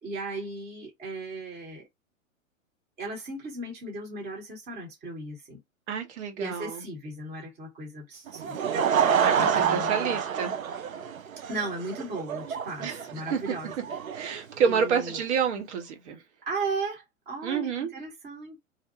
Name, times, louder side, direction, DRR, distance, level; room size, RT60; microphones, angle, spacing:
voice 1, 0.0-1.9 3.0-5.6 6.4-10.2 11.5-13.7 14.3-15.2 16.4-18.6, right 3 dB, 20° right, 1.0 m, -36 dB
voice 2, 5.9-6.8 9.2-10.5 12.8-13.0 13.3-13.4 14.1-16.2 17.4-17.9, right 6 dB, 55° right, 0.9 m, -29 dB
Laughter / Crowd, 8.3-15.2, right 7 dB, 90° right, 0.5 m, -28 dB
2.7 x 2.1 x 2.6 m
figure-of-eight pair, 110°, 40 cm